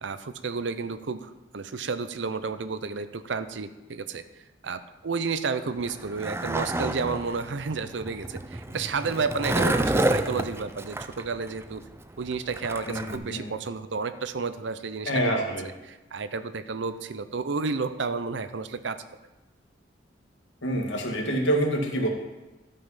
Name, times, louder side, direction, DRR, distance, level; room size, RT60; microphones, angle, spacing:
voice 1, 0.0-4.2 4.6-11.8 12.2-15.4 15.8-19.0, right 4 dB, 75° right, 12 dB, 0.6 m, -31 dB
Skateboard, 5.7-13.2, right 1 dB, 15° right, 0.4 m, -29 dB
voice 2, 12.9-13.5 15.1-15.6 20.6-22.1, right 1 dB, 85° left, 1 dB, 1.9 m, -26 dB
12.5 x 5.6 x 5.7 m, 1.1 s
head